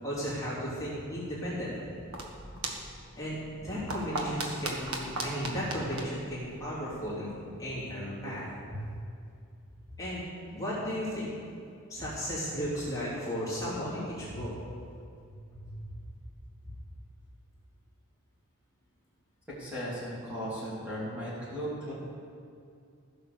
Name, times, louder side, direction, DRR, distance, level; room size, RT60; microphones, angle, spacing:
voice 1, 0.0-1.9 3.2-7.3 7.6-8.8 10.0-10.2 10.5-11.3 11.9-14.5 15.5-15.7 16.6-16.7, equal, 15° left, -9 dB, 3.1 m, -35 dB
sound 1, 1.8-7.1, right 2 dB, 75° right, 1.5 m, -39 dB
voice 2, 19.6-21.9, equal, 5° right, -10 dB, 2.9 m, -36 dB
15.0 x 6.1 x 6.8 m, 2.5 s
head